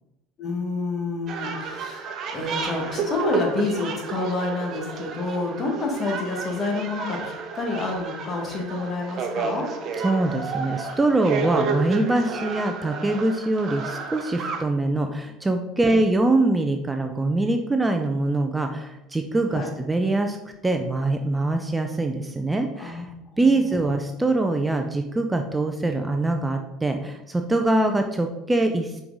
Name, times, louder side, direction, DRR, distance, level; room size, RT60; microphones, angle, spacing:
voice 1, 0.4-9.7 15.8-16.0 19.5-19.7 22.8-23.1 23.3-23.4, left 3 dB, 35° left, 1 dB, 1.9 m, -28 dB
sound 1, 1.3-14.6, right 4 dB, 50° right, 0.9 m, -31 dB
voice 2, 10.0-20.4 20.6-23.1 23.4-29.0, right 2 dB, 15° right, 5 dB, 0.6 m, -23 dB
5.8 x 4.7 x 4.0 m, 0.94 s
hypercardioid pair, 80°, 0 cm